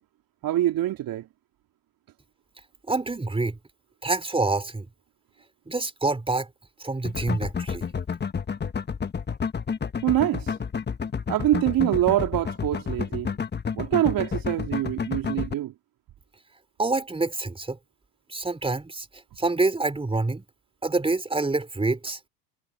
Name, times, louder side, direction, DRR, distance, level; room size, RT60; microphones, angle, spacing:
voice 1, 0.4-1.3 10.0-10.5 11.3-13.3 13.7-15.7, right 13 dB, 50° right, 2.8 m, -24 dB
voice 2, 2.9-3.6 4.0-4.9 5.7-6.5 6.8-7.9 16.8-17.8 18.3-19.1 19.4-20.4 20.8-22.2, right 3 dB, 10° right, 3.7 m, -26 dB
sound 1, 7.0-15.5, left 6 dB, 25° left, 1.5 m, -30 dB
hypercardioid pair, 70°, 44 cm